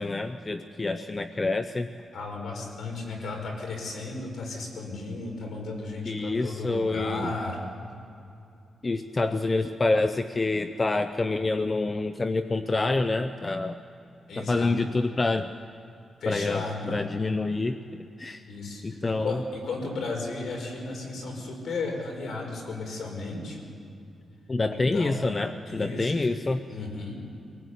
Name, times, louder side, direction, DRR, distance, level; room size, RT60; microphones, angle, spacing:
voice 1, 0.0-1.9 6.1-7.3 8.8-13.8 14.4-15.5 16.3-17.8 18.2-18.5 18.8-19.4 24.5-26.6, left 3 dB, 30° left, 9 dB, 0.7 m, -27 dB
voice 2, 2.1-7.6 14.3-14.7 16.2-17.0 18.5-23.6 24.7-25.2 25.6-26.3 26.7-27.2, left 3 dB, 75° left, 1 dB, 5.3 m, -34 dB
25.0 x 18.5 x 8.4 m, 2.6 s
cardioid pair, 100°, 0 cm